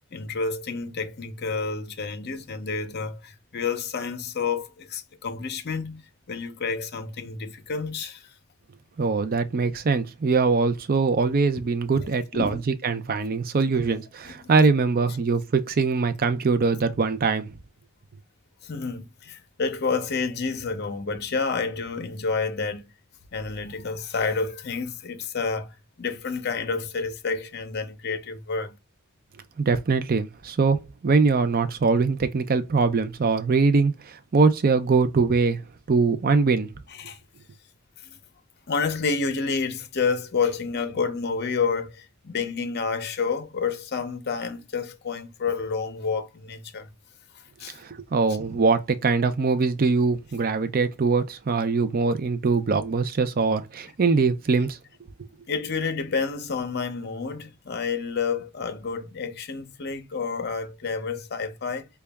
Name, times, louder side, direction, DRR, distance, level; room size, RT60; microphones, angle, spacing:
voice 1, 0.1-8.3 11.9-12.1 12.3-12.6 14.2-14.5 18.6-22.9 23.3-28.7 37.0-37.2 38.0-38.2 38.7-46.9 47.3-47.8 55.5-61.9, left 5 dB, 45° left, 0.6 m, -29 dB
voice 2, 9.0-17.5 29.6-35.6 35.9-36.7 47.7-54.8, right 4 dB, 40° right, 0.4 m, -22 dB
3.9 x 2.3 x 3.4 m
head